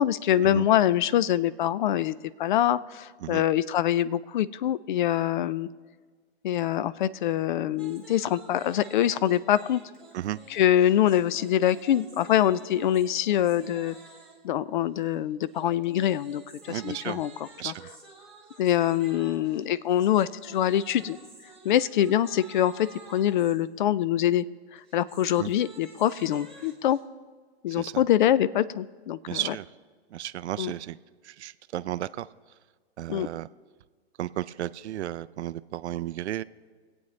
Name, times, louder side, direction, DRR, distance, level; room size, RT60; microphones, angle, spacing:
voice 1, 0.0-5.7 6.4-9.8 10.5-13.9 14.4-16.4 16.7-17.3 17.6-17.7 18.6-21.2 21.6-24.4 24.9-27.0 27.6-29.5 30.6-30.7 33.1-33.3, left 11 dB, 50° left, 18 dB, 0.4 m, -24 dB
sound 1, 7.7-14.5 15.5-23.5 24.8-27.0, right 3 dB, ahead, 1.8 m, -50 dB
voice 2, 16.7-17.2 17.6-17.9 25.4-25.5 27.7-28.1 29.3-29.7 30.1-31.0 31.2-32.3 33.0-33.5 34.2-36.4, right 13 dB, 85° right, 15 dB, 0.5 m, -34 dB
23.5 x 8.8 x 3.2 m, 1.5 s
hypercardioid pair, 150°, 33 cm